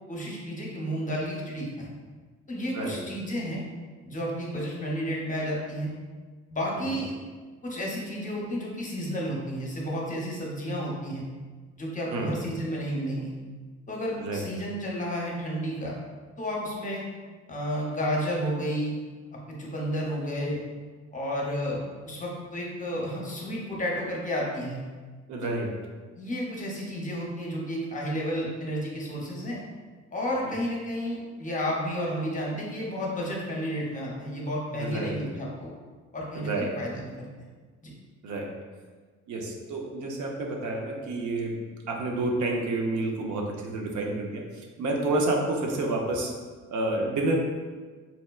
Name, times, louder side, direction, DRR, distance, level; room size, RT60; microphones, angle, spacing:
voice 1, 0.1-1.9 2.5-3.6 4.0-5.9 6.5-7.1 7.6-11.2 11.8-13.3 13.9-15.9 16.4-17.0 17.5-18.9 19.6-20.6 21.1-24.8 26.2-29.6 30.1-35.7 36.1-36.5 36.8-37.3 37.8-37.9, equal, 25° left, -3 dB, 0.7 m, -31 dB
voice 2, 25.3-25.7 30.4-30.6 34.8-35.2 36.3-36.7 38.2-38.5 39.3-46.3 46.7-47.4, right 2 dB, 75° right, 0 dB, 0.6 m, -29 dB
4.0 x 2.1 x 2.3 m, 1.4 s
cardioid pair, 90°, 30 cm